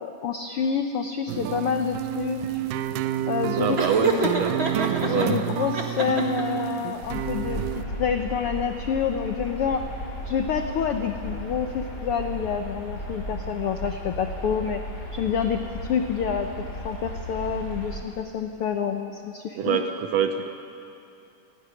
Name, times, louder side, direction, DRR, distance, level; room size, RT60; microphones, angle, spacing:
voice 1, 0.0-2.6 3.3-4.3 5.0-7.6 8.0-9.8 10.2-14.8 15.1-19.8, left 7 dB, 85° left, 6 dB, 1.2 m, -28 dB
sound 1, 1.3-7.8, right 12 dB, 85° right, 2.3 m, -29 dB
voice 2, 3.5-4.6 5.1-5.3 19.6-20.5, right 8 dB, 70° right, 6 dB, 1.7 m, -25 dB
Laughter, 3.8-5.3 5.7-6.6, right 3 dB, 35° right, 1.0 m, -26 dB
sound 2, 7.0-18.0, equal, 30° left, 3.5 m, -35 dB
29.0 x 11.5 x 9.8 m, 2.6 s
omnidirectional pair, 3.8 m